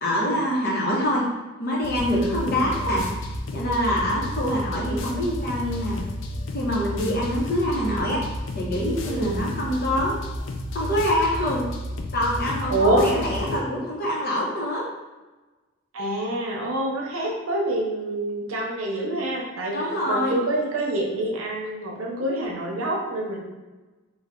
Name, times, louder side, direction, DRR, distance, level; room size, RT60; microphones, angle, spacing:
voice 1, 0.0-1.3 1.6-3.1 3.5-6.0 6.5-8.2 8.5-10.1 10.7-11.6 12.1-14.8 19.7-20.4, equal, 45° left, -4 dB, 0.9 m, -25 dB
sound 1, 1.8-13.6, left 1 dB, 65° left, 0.4 m, -32 dB
voice 2, 2.1-2.7 9.1-9.4 12.7-13.1 15.9-23.4, right 1 dB, 80° right, -1 dB, 0.7 m, -26 dB
3.3 x 2.3 x 3.8 m, 1.2 s
head